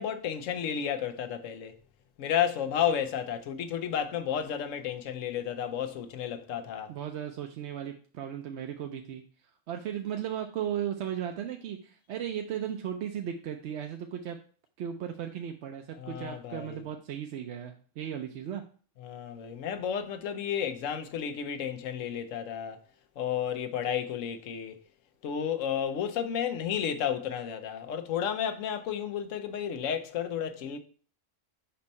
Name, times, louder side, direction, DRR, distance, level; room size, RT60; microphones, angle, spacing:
voice 1, 0.0-1.8 2.2-6.9 16.0-16.8 19.0-22.8 23.2-24.8 25.2-30.8, left 8 dB, 85° left, 1.1 m, -32 dB
voice 2, 6.9-9.2 9.7-14.4 14.8-18.6, right 9 dB, 70° right, 0.8 m, -36 dB
5.3 x 4.4 x 4.1 m
omnidirectional pair, 1.3 m